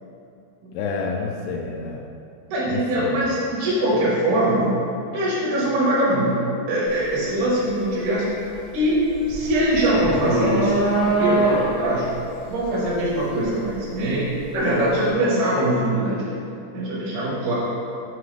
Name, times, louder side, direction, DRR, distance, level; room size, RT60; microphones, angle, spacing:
voice 1, 0.7-2.1 2.7-3.2, left 4 dB, 85° left, 0 dB, 2.5 m, -29 dB
voice 2, 2.5-4.8 5.1-6.4 6.7-9.0 9.2-12.1 12.5-16.2 16.7-17.5, right 1 dB, 70° right, -9 dB, 3.1 m, -22 dB
sound 1, 6.9-7.1 7.5-14.5, right 2 dB, 60° left, 1.4 m, -24 dB
7.7 x 4.7 x 3.2 m, 2.7 s
omnidirectional pair, 4.8 m